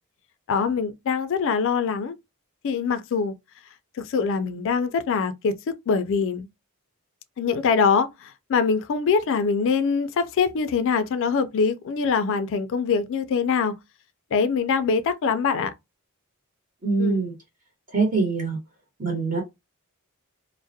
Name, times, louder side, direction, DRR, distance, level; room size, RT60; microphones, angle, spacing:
voice 1, 0.5-2.2 2.6-3.3 4.0-5.5 5.9-6.5 7.4-13.7 14.3-15.7 17.0-17.2, left 5 dB, 60° left, 0.3 m, -23 dB
voice 2, 16.8-17.3 17.9-18.6 19.0-19.4, right 3 dB, 40° right, 1.0 m, -23 dB
2.3 x 2.0 x 2.6 m
head